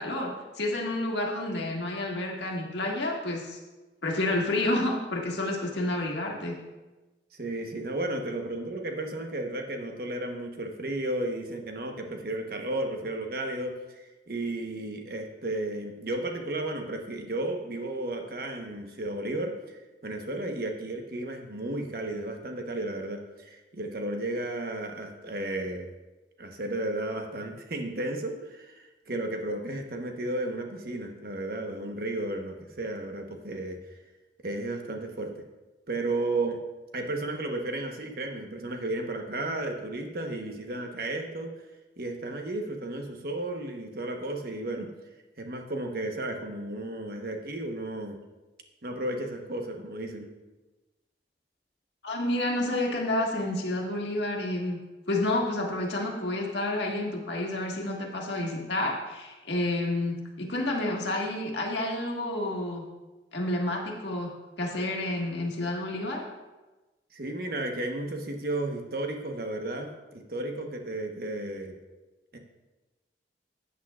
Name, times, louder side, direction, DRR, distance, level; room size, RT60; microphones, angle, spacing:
voice 1, 0.0-3.6 4.0-6.5 52.0-54.8 55.1-62.8 63.3-64.3 64.6-66.2, left 1 dB, 80° left, 0 dB, 1.6 m, -29 dB
voice 2, 7.3-25.9 26.4-33.8 34.4-35.3 35.9-36.6 36.9-41.5 42.0-44.9 45.4-48.2 48.8-50.3 67.1-71.7 72.3-72.4, right 2 dB, 55° right, 3 dB, 1.0 m, -33 dB
14.0 x 8.5 x 2.4 m, 1.1 s
head